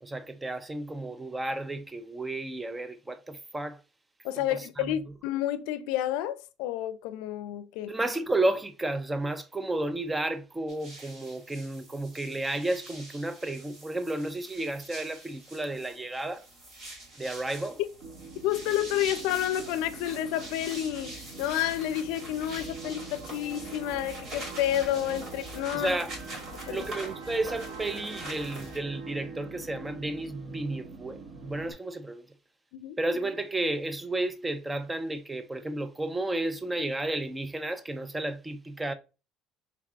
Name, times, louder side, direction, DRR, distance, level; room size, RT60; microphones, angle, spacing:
voice 1, 0.0-3.8 4.5-4.9 7.9-16.5 17.2-17.8 25.7-26.1 26.7-32.2 33.0-38.9, right 2 dB, 10° right, 0.3 m, -32 dB
voice 2, 4.2-7.9 18.4-26.0 26.5-26.8 32.7-33.0, left 12 dB, 75° left, 0.4 m, -30 dB
sound 1, 10.7-28.8, right 1 dB, 35° right, 1.4 m, -44 dB
sound 2, 18.0-31.7, right 4 dB, 55° right, 1.1 m, -44 dB
4.5 x 3.5 x 2.4 m
cardioid pair, 175°, 0 cm